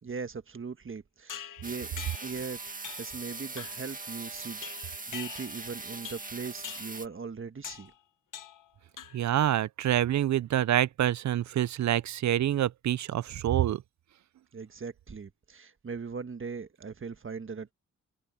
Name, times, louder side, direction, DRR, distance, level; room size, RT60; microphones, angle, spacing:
voice 1, 0.0-1.9 2.2-2.6 3.0-7.9 14.5-17.7, right 5 dB, 40° right, 1.5 m, -39 dB
sound 1, 1.3-2.4 2.8-3.2 3.6-3.9 4.6-5.7 6.0-6.3 6.6-7.0 7.6-7.9 8.3-8.7 9.0-9.4, left 9 dB, 85° left, 1.7 m, -44 dB
sound 2, 1.6-7.1, right 3 dB, 25° right, 1.9 m, -41 dB
voice 2, 9.1-13.8, right 11 dB, 65° right, 0.5 m, -26 dB
cardioid pair, 65°, 31 cm